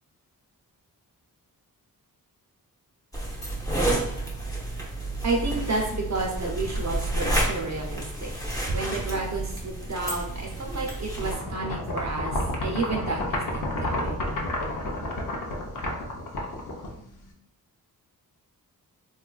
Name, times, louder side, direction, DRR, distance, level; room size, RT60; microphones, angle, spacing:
sound 1, 3.1-11.4, right 1 dB, 10° left, 0.6 m, -30 dB
voice 1, 5.2-8.3 8.7-14.2, right 3 dB, 50° right, 0 dB, 0.5 m, -31 dB
sound 2, 11.2-17.3, left 1 dB, 60° left, 0.6 m, -30 dB
3.7 x 2.3 x 2.3 m, 0.72 s
wide cardioid pair, 145°, 36 cm